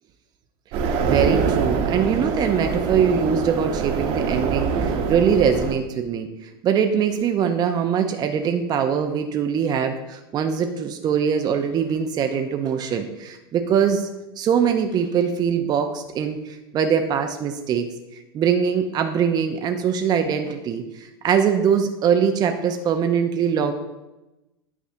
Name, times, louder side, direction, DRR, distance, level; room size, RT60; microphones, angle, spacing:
sound 1, 0.7-5.8, right 5 dB, 50° right, 1.1 m, -24 dB
voice 1, 1.0-14.1 14.4-23.7, right 7 dB, 30° right, 6 dB, 0.6 m, -22 dB
9.5 x 5.9 x 2.7 m, 0.98 s
figure-of-eight pair, 85°, 13 cm